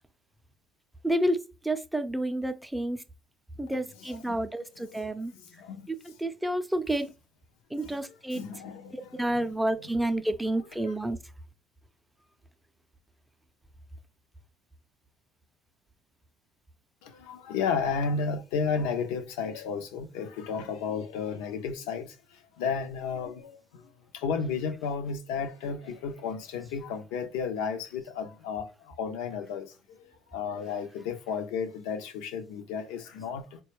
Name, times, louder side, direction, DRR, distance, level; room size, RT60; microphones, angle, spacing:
voice 1, 1.0-1.4 1.6-3.0 3.6-5.3 5.9-7.1 7.7-8.4 8.9-11.2, right 1 dB, 5° right, 0.5 m, -29 dB
voice 2, 4.9-5.9 7.8-8.0 8.3-9.8 17.0-33.6, left 6 dB, 85° left, 0.5 m, -33 dB
3.9 x 2.3 x 3.0 m
supercardioid pair, 85°, 0 cm